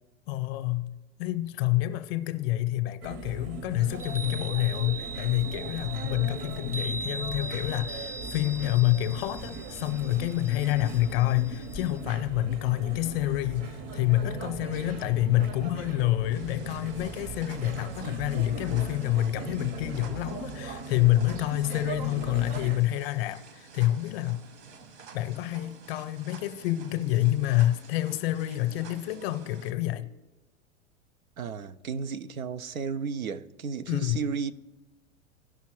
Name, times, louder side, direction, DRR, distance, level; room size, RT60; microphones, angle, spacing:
voice 1, 0.3-24.4 25.1-30.1 33.9-34.2, left 15 dB, 45° left, 0.7 m, -28 dB
sound 1, 3.0-22.8, right 3 dB, 40° right, 0.9 m, -39 dB
Chime, 3.9-12.0, right 3 dB, 5° right, 0.5 m, -40 dB
sound 2, 16.3-29.7, right 5 dB, 55° right, 1.3 m, -50 dB
voice 2, 31.4-34.5, right 6 dB, 85° right, 0.6 m, -33 dB
17.0 x 5.8 x 3.1 m
figure-of-eight pair, 95°, 41 cm